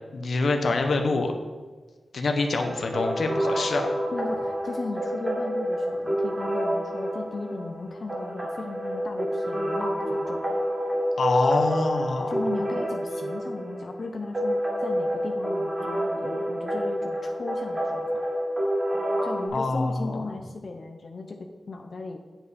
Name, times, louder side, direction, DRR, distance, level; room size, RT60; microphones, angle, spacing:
voice 1, 0.1-1.3 2.1-3.8 11.2-12.3 19.5-20.2, left 3 dB, 75° left, 4 dB, 1.2 m, -25 dB
sound 1, 2.6-19.5, equal, 25° right, 2.2 m, -28 dB
voice 2, 4.1-10.4 12.3-18.2 19.2-22.2, left 3 dB, 55° left, 3 dB, 0.8 m, -36 dB
9.2 x 8.0 x 4.3 m, 1.4 s
wide cardioid pair, 130°, 0 cm